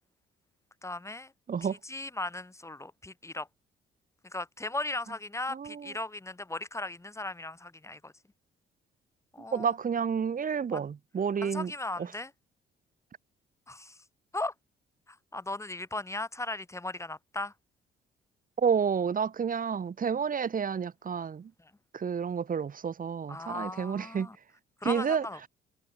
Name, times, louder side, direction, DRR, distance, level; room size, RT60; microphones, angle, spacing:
voice 1, 0.8-1.3 1.6-3.5 4.3-8.1 9.3-9.7 10.7-10.8 11.4-12.3 13.7-14.0 14.3-14.5 15.1-17.5 23.3-24.4 24.8-25.4, left 2 dB, 15° left, 2.4 m, -37 dB
voice 2, 5.5-5.9 9.5-11.7 12.0-12.1 18.6-21.5 21.9-24.3 24.8-25.3, right 6 dB, 45° right, 2.7 m, -30 dB
cardioid pair, 90°, 20 cm